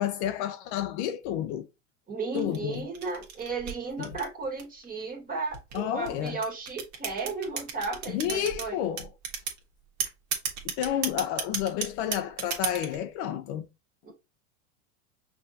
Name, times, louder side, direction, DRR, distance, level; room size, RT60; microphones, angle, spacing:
voice 1, 0.0-1.7 2.3-2.9 4.0-4.2 5.7-6.4 8.1-9.1 10.6-13.7, left 10 dB, 50° left, 0.6 m, -30 dB
voice 2, 2.1-8.8 13.2-13.3 14.0-14.1, right 4 dB, 20° right, 1.8 m, -34 dB
sound 1, 2.4-4.8 5.5-8.7 9.0-9.6 10.0-13.0, right 7 dB, 40° right, 1.4 m, -33 dB
5.5 x 2.6 x 2.8 m
supercardioid pair, 125°, 44 cm